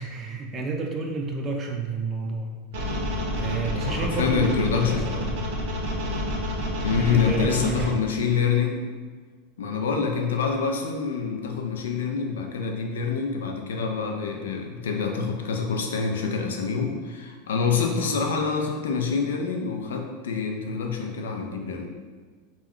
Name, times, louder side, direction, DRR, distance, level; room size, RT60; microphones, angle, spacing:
voice 1, 0.0-2.6 3.3-5.3 7.0-8.0 17.9-18.2, right 3 dB, 30° right, 2 dB, 0.3 m, -31 dB
sound 1, 2.7-7.9, left 1 dB, 75° right, 0.6 m, -29 dB
voice 2, 3.7-5.1 6.8-8.8 9.6-21.9, left 5 dB, 90° left, 3 dB, 0.4 m, -26 dB
2.3 x 2.1 x 3.5 m, 1.5 s
hypercardioid pair, 115°, 0 cm